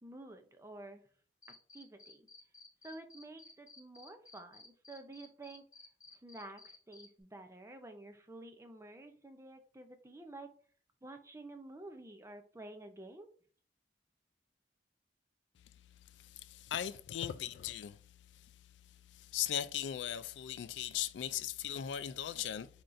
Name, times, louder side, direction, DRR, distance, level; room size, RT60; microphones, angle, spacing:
voice 1, 0.0-1.0 1.7-2.3 2.8-5.6 6.2-10.5 11.0-13.3, right 2 dB, 15° right, 0.5 m, -50 dB
Cricket, 1.4-7.1, left 3 dB, 20° left, 0.8 m, -55 dB
voice 2, 16.2-18.0 18.4-18.5 19.1-22.7, left 10 dB, 85° left, 0.3 m, -38 dB
4.3 x 3.9 x 2.5 m
head